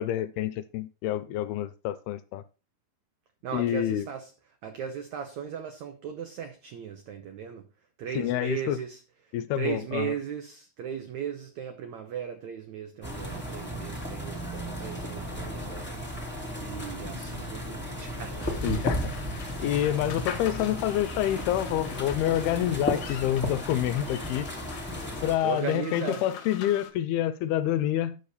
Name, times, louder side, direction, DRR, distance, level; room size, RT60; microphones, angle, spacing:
voice 1, 0.0-2.4 3.5-4.1 8.2-8.8 9.3-10.1 18.6-19.1 19.6-24.5 25.2-28.2, left 12 dB, 80° left, 2.5 m, -27 dB
voice 2, 3.4-4.3 4.6-7.7 8.0-16.1 16.6-18.6 20.0-20.1 25.4-26.2, right 8 dB, 80° right, 1.6 m, -37 dB
sound 1, 13.0-25.4, equal, 5° left, 0.9 m, -34 dB
sound 2, 18.4-26.9, left 8 dB, 65° left, 2.5 m, -44 dB
10.0 x 6.7 x 4.1 m
omnidirectional pair, 4.6 m